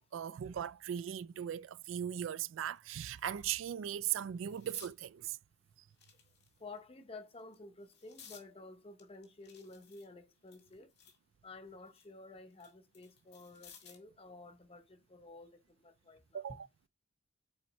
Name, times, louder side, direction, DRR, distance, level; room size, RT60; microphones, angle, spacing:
voice 1, 0.1-5.4 16.3-16.5, right 10 dB, 85° right, 0.3 m, -38 dB
Tape Measure, 1.7-1.8 2.2-3.7 4.0-5.0 5.9-6.8 7.4-8.5 9.0-11.2 11.6-14.1 15.5-15.7, left 7 dB, 60° left, 1.8 m, -59 dB
voice 2, 6.6-10.9 11.4-16.6, left 3 dB, 30° left, 0.8 m, -52 dB
8.8 x 4.4 x 3.0 m
head